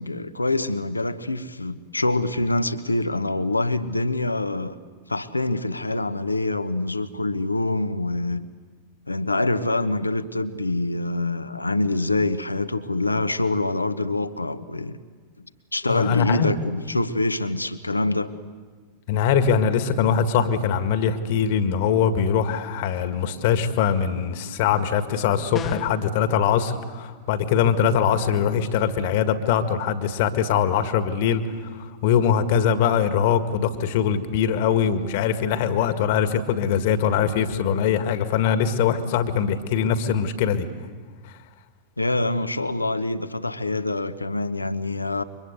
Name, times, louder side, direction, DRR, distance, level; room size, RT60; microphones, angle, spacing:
voice 1, 0.0-4.8 5.1-8.4 9.1-15.0 15.7-18.3 42.0-45.2, left 2 dB, 85° left, 11 dB, 1.2 m, -25 dB
voice 2, 15.9-16.5 19.1-40.7, left 7 dB, 50° left, 10 dB, 1.8 m, -22 dB
sound 1, 25.5-26.1, left 6 dB, 25° left, 1.4 m, -33 dB
29.5 x 24.5 x 8.2 m, 1.5 s
figure-of-eight pair, 90°, 0 cm